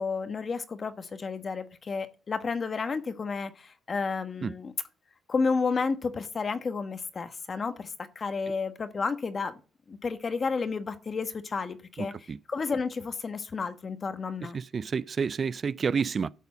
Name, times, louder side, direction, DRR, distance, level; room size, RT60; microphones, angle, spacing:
voice 1, 0.0-4.7 5.3-9.5 9.9-14.6, left 4 dB, 40° left, 1.1 m, -31 dB
voice 2, 12.0-12.4 14.5-16.3, right 6 dB, 45° right, 0.4 m, -29 dB
12.0 x 4.2 x 7.0 m
cardioid pair, 90°, 0 cm